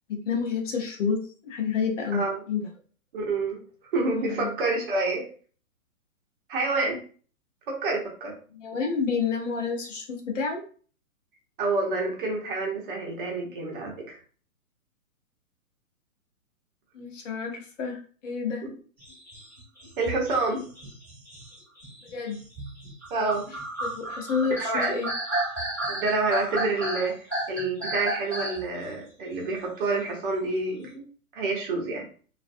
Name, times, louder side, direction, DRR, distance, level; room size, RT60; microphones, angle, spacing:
voice 1, 0.1-2.2 2.5-2.6 4.2-4.5 8.5-10.6 16.9-18.6 22.0-22.4 23.8-25.1, left 5 dB, 55° left, 1 dB, 0.9 m, -29 dB
voice 2, 2.1-2.4 3.1-3.6 3.9-5.3 6.5-7.0 7.7-8.3 11.6-14.2 18.6-18.7 20.0-20.6 23.1-23.5 24.6-24.9 25.9-31.0 31.3-32.0, right 3 dB, 40° right, 0 dB, 0.8 m, -28 dB
sound 1, 19.0-28.7, right 1 dB, 5° left, 1.1 m, -32 dB
2.5 x 2.2 x 2.5 m, 0.41 s
hypercardioid pair, 150°, 44 cm